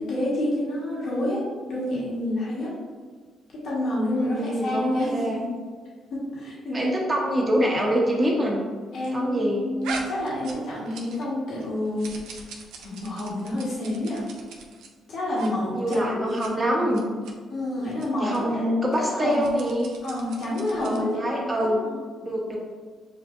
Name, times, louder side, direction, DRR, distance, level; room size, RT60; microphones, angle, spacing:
voice 1, 0.0-2.7 3.6-5.4 6.3-6.8 8.9-12.1 12.8-14.2 15.1-16.4 17.5-18.7 18.9-19.5 20.0-22.0, left 1 dB, 65° left, -7 dB, 1.5 m, -28 dB
voice 2, 4.1-5.4 6.7-8.6 9.1-9.6 15.7-17.0 18.2-19.9 20.8-21.8 22.2-22.6, equal, 15° right, -3 dB, 1.2 m, -25 dB
sound 1, 9.8-11.3 11.6-14.9 15.3-15.5 15.8-16.0 16.3-16.5 16.9-17.3 17.9-18.1 18.3-18.4 19.2-21.1, right 4 dB, 85° right, 0.6 m, -40 dB
7.0 x 2.5 x 2.6 m, 1.5 s
cardioid pair, 90°, 0 cm